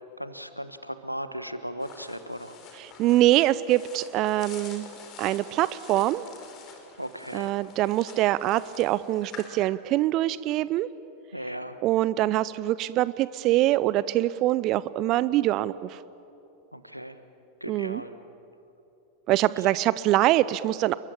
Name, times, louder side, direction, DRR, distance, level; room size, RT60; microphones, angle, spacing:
voice 1, 0.2-2.6 7.0-7.5 11.3-11.8 16.7-17.2 17.6-18.1, equal, 90° right, 10 dB, 1.3 m, -36 dB
sound 1, 1.8-9.5, left 5 dB, 35° left, 4.8 m, -47 dB
voice 2, 2.7-4.8 5.2-6.2 7.3-10.9 11.8-16.0 17.7-18.0 19.3-20.9, right 15 dB, 40° right, 17 dB, 0.6 m, -24 dB
29.5 x 22.0 x 8.7 m, 2.9 s
figure-of-eight pair, 90°, 0 cm